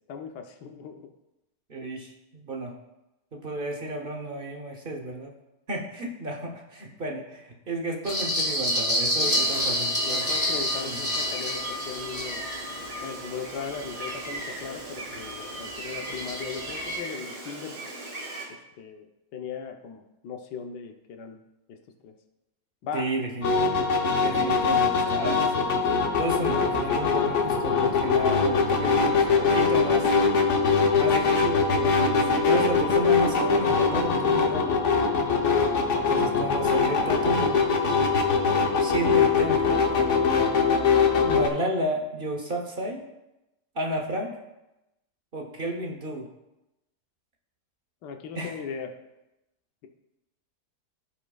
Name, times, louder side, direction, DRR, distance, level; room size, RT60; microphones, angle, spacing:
voice 1, 0.1-1.1 9.1-9.5 10.0-12.4 13.0-17.8 18.8-19.0 19.3-21.4 21.7-21.8 22.0-22.1 22.8-23.1 48.0-48.9, left 6 dB, 80° left, 5 dB, 1.4 m, -38 dB
voice 2, 1.7-2.7 3.3-5.3 5.7-10.3 10.8-11.0 22.9-23.9 24.2-30.1 31.0-34.8 35.9-37.6 38.8-39.8 41.2-43.1 43.7-44.4 45.3-46.3 48.3-48.6, right 1 dB, 40° right, 1 dB, 0.9 m, -32 dB
sound 1, 8.0-14.7 15.2-17.0, equal, 10° left, 3.1 m, -29 dB
Gull seagull, 9.2-18.5, right 2 dB, 70° right, 2.1 m, -38 dB
sound 2, 23.4-41.5, left 5 dB, 50° left, 1.1 m, -22 dB
15.0 x 5.2 x 2.3 m, 0.93 s
omnidirectional pair, 1.8 m